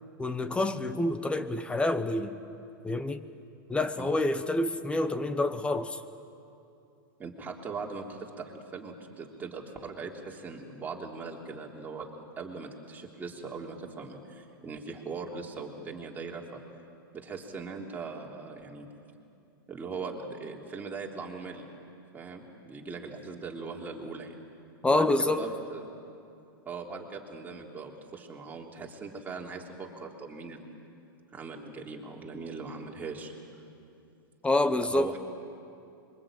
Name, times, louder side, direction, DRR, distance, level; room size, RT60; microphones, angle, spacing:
voice 1, 0.2-2.4 2.8-3.2 3.7-6.0 24.8-25.4 34.4-35.1, left 2 dB, 10° left, 11 dB, 1.0 m, -27 dB
voice 2, 7.2-12.1 12.4-16.6 17.1-18.9 19.7-21.7 22.1-24.4 24.9-26.0 26.6-30.7 31.3-33.3 34.8-35.2, right 4 dB, 15° right, 0 dB, 3.2 m, -40 dB
26.5 x 23.5 x 8.8 m, 2.6 s
hypercardioid pair, 130°, 12 cm